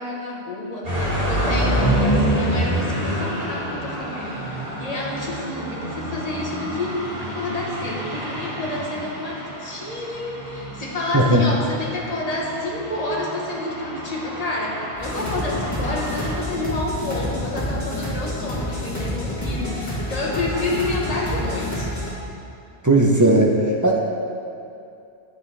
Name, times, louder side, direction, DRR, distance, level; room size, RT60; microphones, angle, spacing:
voice 1, 0.0-22.0, left 2 dB, 35° left, -3 dB, 1.3 m, -29 dB
sound 1, 0.8-16.4, right 1 dB, 60° right, 2.3 m, -27 dB
sound 2, 15.0-22.1, left 1 dB, 15° left, 1.6 m, -28 dB
voice 2, 22.8-23.6 23.8-24.0, right 2 dB, 20° right, -1 dB, 0.5 m, -16 dB
9.5 x 7.6 x 3.3 m, 2.6 s
omnidirectional pair, 1.1 m